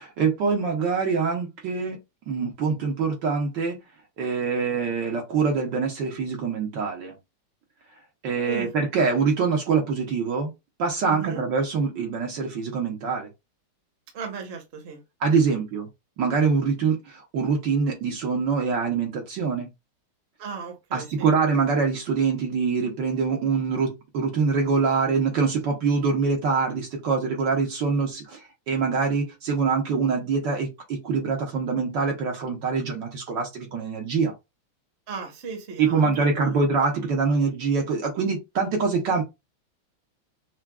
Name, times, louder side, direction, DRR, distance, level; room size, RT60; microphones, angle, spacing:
voice 1, 0.0-2.0 2.3-3.8 4.2-7.1 8.2-10.5 10.8-13.3 15.2-15.9 16.2-19.7 20.9-34.3 35.8-39.2, right 5 dB, 65° right, 1.4 m, -24 dB
voice 2, 11.1-11.4 14.1-15.0 15.5-15.6 20.4-21.3 35.1-36.5, right 5 dB, 40° right, 1.0 m, -36 dB
5.8 x 2.2 x 2.3 m
omnidirectional pair, 2.3 m